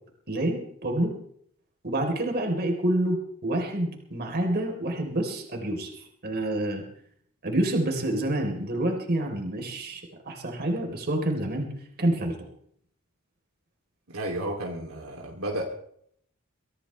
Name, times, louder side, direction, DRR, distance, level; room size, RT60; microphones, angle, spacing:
voice 1, 0.3-1.1 1.8-5.9 6.2-6.8 7.4-11.7 12.0-12.4, right 1 dB, 45° right, 2 dB, 3.7 m, -27 dB
voice 2, 14.1-15.7, right 1 dB, 70° right, -1 dB, 2.8 m, -32 dB
23.5 x 16.0 x 3.3 m, 0.65 s
head